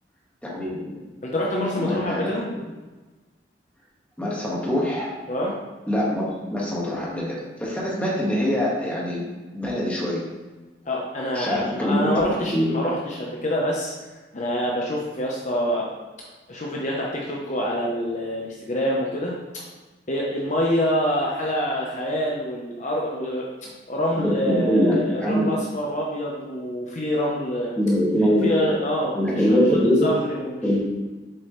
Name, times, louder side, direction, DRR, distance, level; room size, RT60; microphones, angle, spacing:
voice 1, 0.4-1.0 1.8-2.7 4.2-5.1 5.9-9.3 9.5-10.3 11.3-12.8 24.2-25.5 27.8-28.7 29.1-30.1 30.6-31.0, equal, 10° left, -5 dB, 1.7 m, -23 dB
voice 2, 1.2-2.5 5.3-5.6 10.9-13.9 14.3-19.6 20.1-23.5 23.9-27.7 28.4-29.6 30.0-30.6, equal, 45° left, -3 dB, 0.9 m, -26 dB
7.6 x 4.7 x 3.2 m, 1.2 s
head